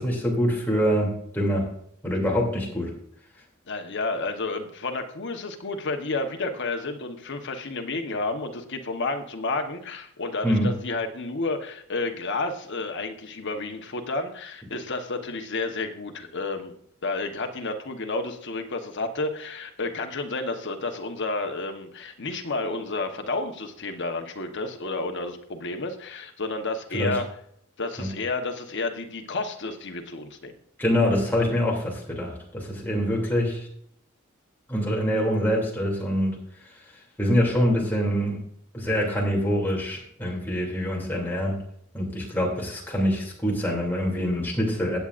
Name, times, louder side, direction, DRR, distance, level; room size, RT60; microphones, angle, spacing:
voice 1, 0.0-1.7 2.0-2.9 10.4-10.7 26.9-27.1 28.0-28.1 30.8-33.7 34.7-36.4 37.2-38.4 38.7-41.6 41.9-45.0, equal, 10° left, -3 dB, 2.8 m, -25 dB
voice 2, 3.7-16.7 17.0-27.3 27.8-30.6, left 3 dB, 55° left, 5 dB, 1.1 m, -31 dB
16.0 x 8.5 x 2.5 m, 0.68 s
head